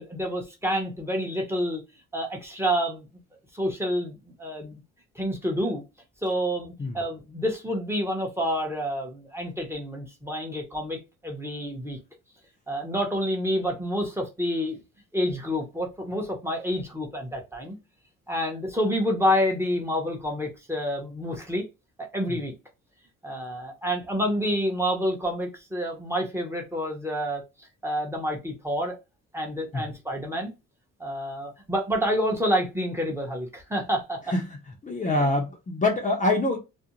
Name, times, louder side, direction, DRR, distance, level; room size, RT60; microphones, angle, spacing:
voice 1, 0.0-1.8 2.1-3.1 3.5-4.8 5.2-5.8 6.2-12.0 12.7-14.8 15.1-17.8 18.3-21.6 22.1-22.5 23.2-27.4 27.8-28.9 29.3-30.5 31.0-34.2 35.1-35.3, equal, 10° right, 0.8 m, -28 dB
voice 2, 34.8-36.6, left 2 dB, 25° left, 0.6 m, -25 dB
2.5 x 2.1 x 2.8 m
cardioid pair, 90°, 30 cm